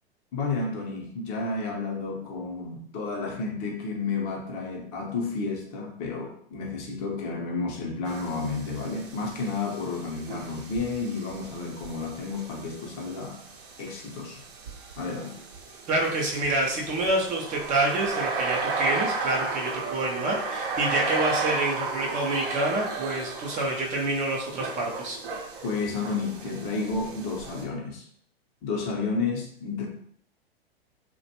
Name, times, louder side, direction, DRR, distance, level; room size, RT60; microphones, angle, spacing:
voice 1, 0.3-13.4 13.8-14.4 15.0-15.4 25.6-28.1 28.6-29.9, left 4 dB, 40° left, 0 dB, 0.7 m, -31 dB
sound 1, 8.1-27.6, right 4 dB, 60° right, 0.7 m, -34 dB
voice 2, 15.9-25.2, right 2 dB, 25° right, -1 dB, 0.5 m, -27 dB
2.4 x 2.2 x 2.7 m, 0.64 s
hypercardioid pair, 100°, 31 cm